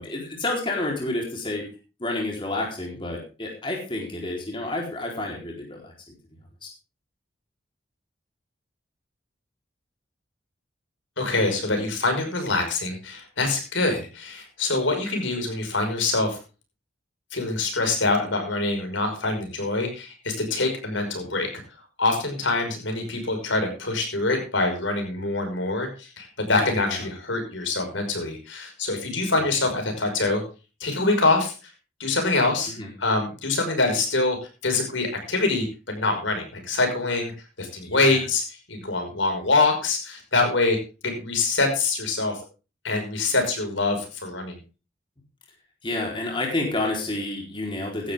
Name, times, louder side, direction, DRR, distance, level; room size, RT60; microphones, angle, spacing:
voice 1, 0.0-1.6 2.0-5.9 6.6-6.7 26.6-27.0 32.7-32.9 37.8-38.2 45.8-48.1, left 2 dB, 25° left, -1 dB, 4.1 m, -29 dB
voice 2, 11.2-16.4 17.3-21.5 22.0-30.4 30.8-31.5 32.0-32.7 33.0-34.4 34.6-37.3 37.6-40.8 41.0-42.4 42.8-44.6, left 3 dB, 80° left, 4 dB, 5.6 m, -25 dB
16.0 x 12.0 x 3.7 m, 0.32 s
head